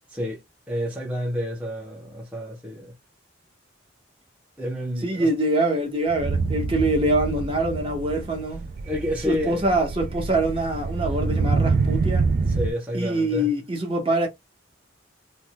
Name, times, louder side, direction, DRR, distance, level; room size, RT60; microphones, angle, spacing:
voice 1, 0.7-2.9 4.6-5.3 8.9-9.7 12.5-13.5, equal, 5° right, 0.7 m, -29 dB
voice 2, 5.0-8.7 9.2-12.3 12.9-14.3, right 1 dB, 30° right, 1.0 m, -24 dB
sound 1, 6.1-12.7, right 4 dB, 45° right, 0.3 m, -26 dB
3.3 x 2.1 x 2.9 m
head